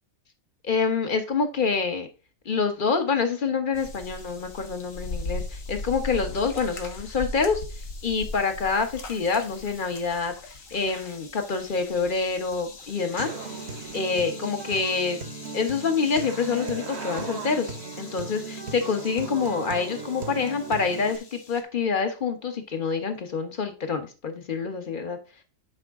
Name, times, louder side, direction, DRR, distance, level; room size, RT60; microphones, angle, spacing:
voice 1, 0.6-2.1 2.4-7.6 8.0-13.3 13.9-15.2 15.5-25.2, left 5 dB, 40° left, 7 dB, 1.3 m, -26 dB
sound 1, 3.7-21.6, left 3 dB, 65° left, 1.7 m, -40 dB
Human voice / Acoustic guitar, 13.2-21.2, right 4 dB, 50° right, 1.2 m, -37 dB
9.4 x 5.1 x 3.6 m, 0.32 s
omnidirectional pair, 1.5 m